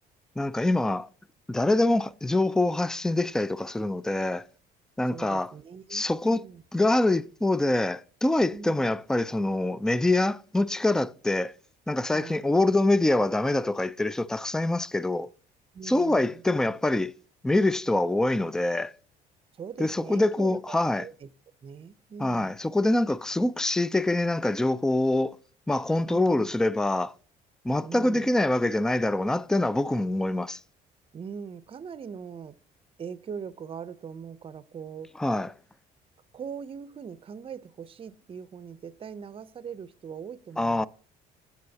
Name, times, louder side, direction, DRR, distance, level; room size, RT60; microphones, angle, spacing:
voice 1, 0.4-1.1 1.5-4.5 5.0-5.5 5.9-6.4 6.7-11.5 11.9-15.3 15.8-17.1 17.4-18.9 19.8-21.0 22.2-25.4 25.7-27.1 27.6-30.6 35.2-35.5 40.6-40.9, left 2 dB, 5° left, 0.3 m, -25 dB
voice 2, 5.1-6.6 8.5-8.9 12.1-12.5 15.7-16.4 19.5-21.3 21.6-22.6 26.1-26.5 27.8-28.3 31.1-32.6 33.0-35.1 36.3-40.9, right 6 dB, 30° right, 0.6 m, -41 dB
14.0 x 4.8 x 2.8 m
cardioid pair, 110°, 17 cm